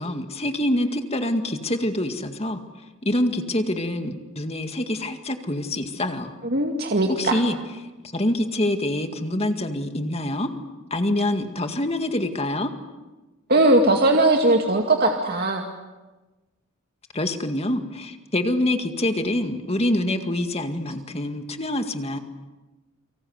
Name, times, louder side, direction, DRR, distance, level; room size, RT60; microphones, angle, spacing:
voice 1, 0.0-2.6 3.0-6.3 7.1-7.6 8.1-10.5 10.9-12.7 17.1-22.2, left 1 dB, 30° left, 6 dB, 2.1 m, -25 dB
voice 2, 6.4-7.4 13.5-15.7, right 2 dB, 50° right, 2 dB, 2.2 m, -19 dB
30.0 x 24.5 x 8.2 m, 1.1 s
head